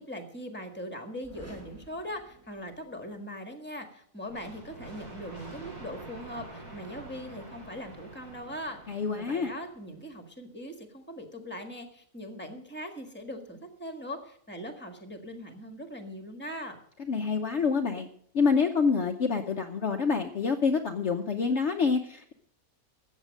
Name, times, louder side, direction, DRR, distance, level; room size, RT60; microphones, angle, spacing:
voice 1, 0.0-16.8, equal, 5° left, 6 dB, 1.6 m, -41 dB
sound 1, 1.2-3.2, right 1 dB, 10° right, 1.7 m, -51 dB
sound 2, 4.3-9.9, right 2 dB, 80° right, 5.8 m, -46 dB
voice 2, 8.9-9.5 17.1-18.1 18.3-22.3, left 5 dB, 55° left, 5 dB, 1.0 m, -27 dB
14.0 x 8.1 x 6.4 m, 0.64 s
omnidirectional pair, 1.6 m